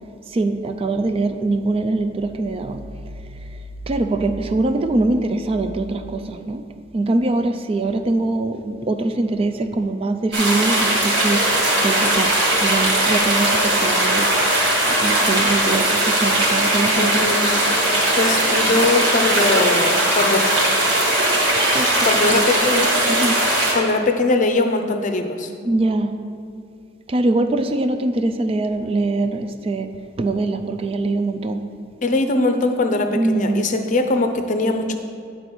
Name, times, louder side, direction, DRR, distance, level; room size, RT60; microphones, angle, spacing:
voice 1, 0.3-2.8 3.9-6.6 6.9-11.4 11.8-12.3 12.6-14.3 14.9-17.3 21.7-22.4 23.1-23.4 25.6-26.1 27.1-29.9 30.2-31.6 33.1-33.7, right 2 dB, 30° right, 8 dB, 0.3 m, -23 dB
sound 1, 10.3-23.7, right 1 dB, 65° right, 2.1 m, -19 dB
voice 2, 16.9-17.6 18.1-20.4 22.1-22.9 23.7-25.5 32.0-34.9, left 2 dB, 40° left, 6 dB, 0.6 m, -21 dB
9.2 x 4.0 x 6.1 m, 2.4 s
head